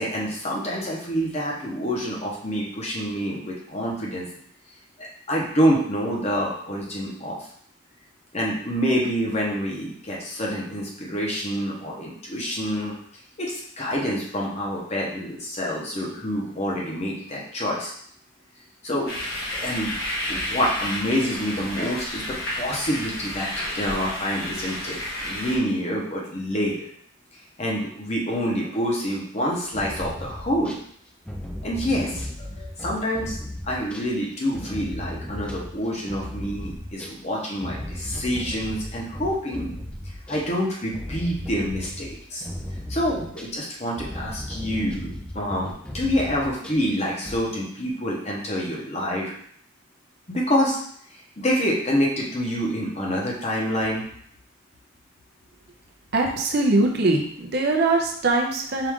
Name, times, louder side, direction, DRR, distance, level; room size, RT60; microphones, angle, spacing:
voice 1, 0.0-4.3 5.0-7.4 8.3-12.9 13.4-17.9 18.8-19.1 19.5-20.0 20.3-23.5 23.7-25.0 25.2-26.9 27.6-30.7 31.6-33.4 33.7-39.7 40.3-42.5 42.9-49.3 50.3-50.8 51.4-54.0, equal, 30° left, -3 dB, 0.8 m, -27 dB
sound 1, 19.1-25.6, left 1 dB, 70° left, 1.2 m, -31 dB
sound 2, 29.5-30.8 31.3-37.2 37.6-46.9 47.2-47.4, left 1 dB, 5° left, 0.3 m, -36 dB
voice 2, 56.1-58.9, right 2 dB, 50° right, 1 dB, 0.6 m, -22 dB
4.7 x 2.5 x 3.6 m, 0.63 s
head